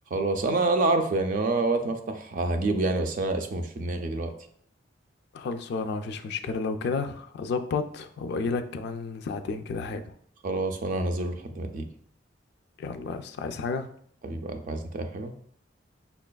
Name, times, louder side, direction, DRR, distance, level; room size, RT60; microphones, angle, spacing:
voice 1, 0.1-4.3 10.4-11.9 14.2-15.3, right 2 dB, 45° right, 6 dB, 0.4 m, -27 dB
voice 2, 5.3-10.0 12.8-13.9, left 4 dB, 60° left, 8 dB, 0.3 m, -31 dB
5.5 x 2.3 x 2.2 m, 0.62 s
head